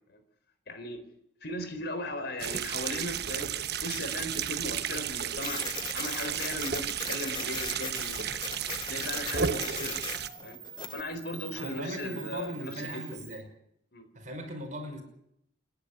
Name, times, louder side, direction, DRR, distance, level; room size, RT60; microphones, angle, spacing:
voice 1, 0.7-1.0 1.4-3.5 3.8-5.6 5.9-8.5 8.9-10.0 10.4-10.6 10.9-13.3 13.9-14.1, left 1 dB, 55° left, 4.2 m, -37 dB
sound 1, 2.4-10.3, right 8 dB, 55° right, 1.1 m, -33 dB
Printer, 5.4-11.0, left 6 dB, 25° left, 0.8 m, -40 dB
Camera, 6.4-13.4, right 7 dB, 20° right, 5.8 m, -48 dB
voice 2, 11.6-13.5 14.1-15.0, right 1 dB, 40° right, 5.8 m, -39 dB
27.5 x 11.5 x 9.9 m
head